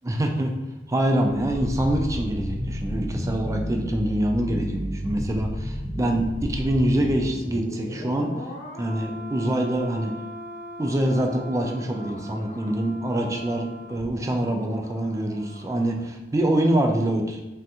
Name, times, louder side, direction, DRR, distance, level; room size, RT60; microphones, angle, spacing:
voice 1, 0.0-0.5 0.9-8.3 8.8-10.1 10.8-17.4, right 1 dB, 15° right, 3 dB, 0.3 m, -25 dB
sound 1, 1.1-16.0 16.3-16.4, equal, 45° left, 0.8 m, -34 dB
3.4 x 2.4 x 2.8 m, 1.0 s
head